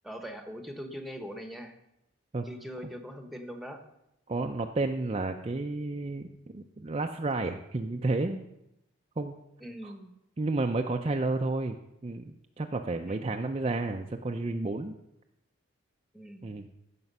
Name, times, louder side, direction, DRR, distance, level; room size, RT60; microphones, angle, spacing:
voice 1, 0.0-1.7 2.4-3.8 9.6-10.2 13.1-13.4 16.1-16.5, equal, ahead, 6 dB, 1.0 m, -42 dB
voice 2, 4.3-8.5 9.2-9.3 9.8-9.9 10.4-15.0 16.4-16.7, right 2 dB, 30° right, 4 dB, 0.5 m, -31 dB
15.0 x 6.0 x 5.4 m, 0.87 s
head